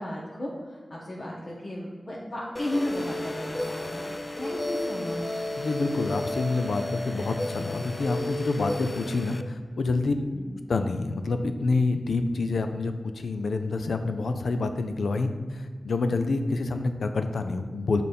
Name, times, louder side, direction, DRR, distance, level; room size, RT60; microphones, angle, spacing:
voice 1, 0.0-5.3 10.1-10.5, left 1 dB, 55° left, -5 dB, 1.2 m, -34 dB
sound 1, 2.6-9.4, left 1 dB, 25° left, 0.5 m, -33 dB
voice 2, 5.6-10.1 10.7-18.0, left 3 dB, 90° left, 7 dB, 0.5 m, -27 dB
6.6 x 4.0 x 5.2 m, 1.5 s
cardioid pair, 50°, 0 cm